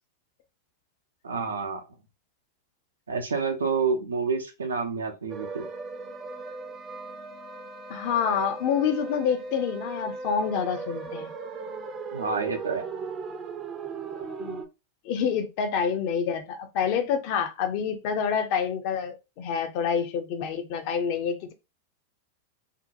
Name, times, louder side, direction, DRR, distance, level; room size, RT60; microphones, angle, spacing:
voice 1, 1.2-1.8 3.1-5.6 12.1-12.9, right 5 dB, 80° right, 0.6 m, -28 dB
sound 1, 5.3-14.7, right 4 dB, 30° right, 0.5 m, -37 dB
voice 2, 7.9-11.3 14.4-14.6 15.0-21.5, left 7 dB, 50° left, 0.6 m, -27 dB
2.7 x 2.2 x 2.5 m
figure-of-eight pair, 95°, 0 cm